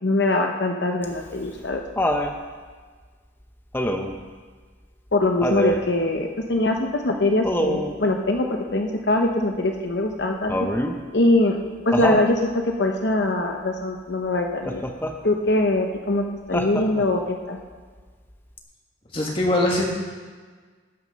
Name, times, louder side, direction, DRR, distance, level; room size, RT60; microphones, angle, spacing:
voice 1, 0.0-1.8 5.1-8.5 8.7-10.5 11.1-11.6 11.9-14.8 15.2-17.6, left 2 dB, 65° left, 3 dB, 0.8 m, -22 dB
Laughter, 1.0-2.4 3.7-4.2 5.4-5.9 7.4-8.0 10.5-11.0 11.9-12.3 14.7-15.2 16.5-17.2 18.6-18.7, equal, 10° left, 0.7 m, -25 dB
voice 2, 19.1-19.8, left 1 dB, 30° left, -2 dB, 2.1 m, -21 dB
19.0 x 6.4 x 5.3 m, 1.5 s
head